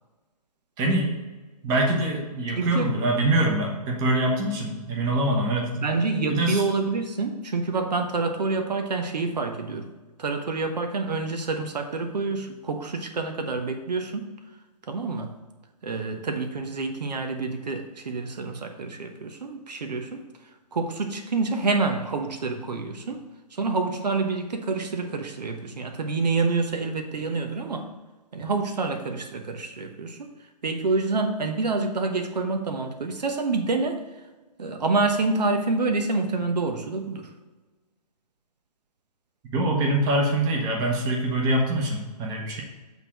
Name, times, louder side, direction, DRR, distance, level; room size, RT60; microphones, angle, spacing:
voice 1, 0.8-1.1 1.6-5.9 6.3-6.6 39.5-42.6, right 1 dB, 20° right, 1 dB, 1.1 m, -24 dB
voice 2, 2.5-2.9 5.8-9.9 10.2-14.3 14.9-15.3 15.8-20.2 20.7-23.2 23.6-27.9 28.3-30.2 30.6-34.0 34.6-37.3, right 3 dB, 80° right, 5 dB, 1.1 m, -27 dB
8.3 x 3.7 x 5.9 m, 1.2 s
hypercardioid pair, 150°, 21 cm